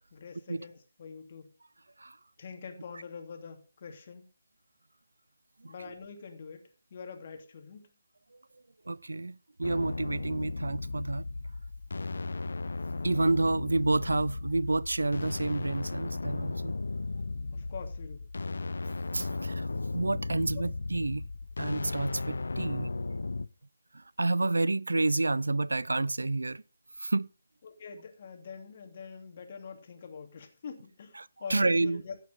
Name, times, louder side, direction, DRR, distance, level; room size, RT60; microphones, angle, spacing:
voice 1, 0.1-1.5 2.4-4.2 5.7-7.9 17.5-18.3 20.5-20.6 27.6-32.2, left 6 dB, 45° left, 2.7 m, -45 dB
voice 2, 8.9-11.2 12.1-12.2 13.0-16.7 19.1-21.3 21.6-22.9 23.9-26.6 27.0-27.3 31.5-32.0, right 2 dB, 75° right, 0.5 m, -29 dB
sound 1, 9.6-23.5, left 3 dB, 70° left, 0.6 m, -35 dB
16.0 x 6.3 x 5.3 m
figure-of-eight pair, 150°, 0 cm